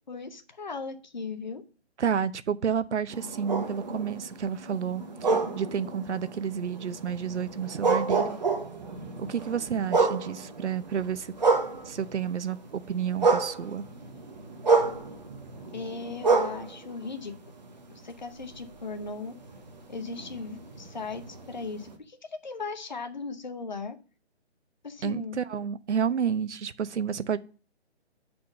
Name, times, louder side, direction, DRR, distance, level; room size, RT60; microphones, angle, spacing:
voice 1, 0.1-1.6 15.7-17.3 18.0-19.3 19.9-24.0 24.8-25.4, left 4 dB, 40° left, 0.7 m, -37 dB
voice 2, 2.0-8.4 9.2-11.3 11.8-13.8 25.0-27.4, right 7 dB, 85° right, 0.7 m, -30 dB
sound 1, 3.1-12.3 12.7-17.9 18.4-21.9, right 4 dB, 40° right, 0.9 m, -29 dB
7.1 x 4.3 x 6.4 m
hypercardioid pair, 175°, 34 cm